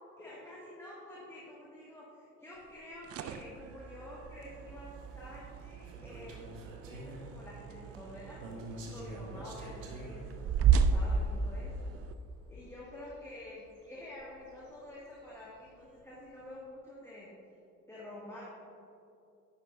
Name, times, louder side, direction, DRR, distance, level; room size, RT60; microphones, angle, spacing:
voice 1, 0.2-6.5 6.8-11.9 12.5-17.3 17.9-18.4, left 1 dB, 5° left, -6 dB, 1.8 m, -49 dB
sound 1, 2.8-12.1, right 6 dB, 40° right, 0.5 m, -34 dB
sound 2, 4.1-16.5, equal, 85° right, 1.0 m, -50 dB
10.5 x 8.1 x 2.6 m, 2.7 s
figure-of-eight pair, 45°, 38 cm